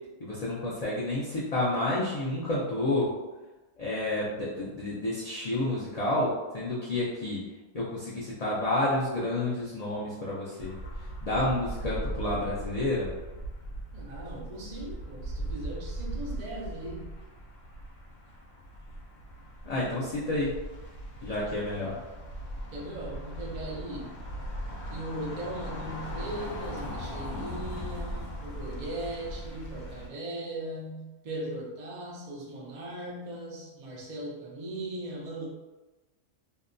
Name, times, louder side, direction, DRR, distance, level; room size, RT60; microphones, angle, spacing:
voice 1, 0.2-3.1 3.8-7.5 7.7-13.1 19.6-20.5 21.2-22.0, left 1 dB, 55° left, -7 dB, 0.4 m, -30 dB
sound 1, 10.6-30.1, equal, 80° left, 1.0 m, -39 dB
voice 2, 13.9-17.1 21.8-22.0 22.7-24.2 24.9-35.5, right 1 dB, 60° right, -3 dB, 0.4 m, -38 dB
2.7 x 2.2 x 2.5 m, 1.1 s
omnidirectional pair, 1.3 m